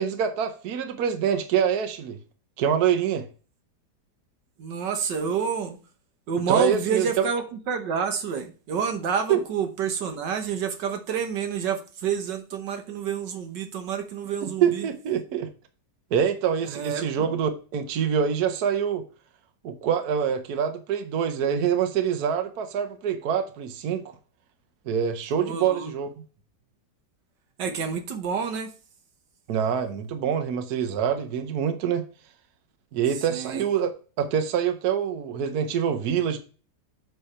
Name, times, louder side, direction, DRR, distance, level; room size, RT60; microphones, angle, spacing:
voice 1, 0.0-2.2 2.6-3.3 6.5-7.3 9.3-9.4 14.4-15.5 16.1-19.0 19.6-24.0 24.9-26.1 29.5-32.0 32.9-33.9 34.2-36.4, right 8 dB, 65° right, 1.3 m, -25 dB
voice 2, 4.6-5.8 6.3-14.9 16.6-17.3 25.4-25.9 27.6-28.7 33.3-33.6, right 6 dB, 85° right, 1.7 m, -28 dB
7.8 x 3.4 x 5.5 m
omnidirectional pair, 1.8 m